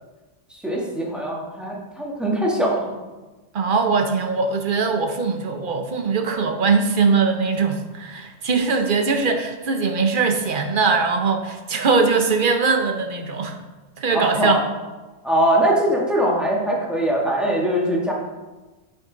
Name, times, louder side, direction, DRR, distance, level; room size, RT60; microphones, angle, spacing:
voice 1, 0.5-2.9 14.1-14.6 15.2-18.1, right 1 dB, ahead, -3 dB, 1.4 m, -22 dB
voice 2, 3.5-13.6 14.0-14.6, right 4 dB, 50° right, 5 dB, 0.8 m, -21 dB
8.3 x 5.3 x 3.9 m, 1.2 s
omnidirectional pair, 1.3 m